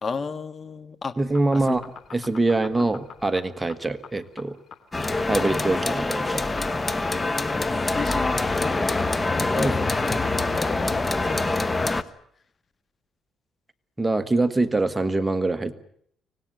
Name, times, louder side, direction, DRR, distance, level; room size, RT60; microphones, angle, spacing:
voice 1, 0.0-1.1 1.5-1.7 5.3-5.4 7.9-10.0 10.5-11.9, left 5 dB, 40° left, 13 dB, 1.5 m, -34 dB
sound 1, 1.2-10.9, left 7 dB, 55° left, 2.7 m, -43 dB
voice 2, 1.2-1.8 2.1-4.6 5.3-6.4 9.6-10.1 14.0-15.7, right 2 dB, 15° right, 10 dB, 1.5 m, -24 dB
sound 2, 4.9-12.0, left 2 dB, 20° left, 1.2 m, -25 dB
25.0 x 19.0 x 9.1 m, 0.66 s
cardioid pair, 90°, 0 cm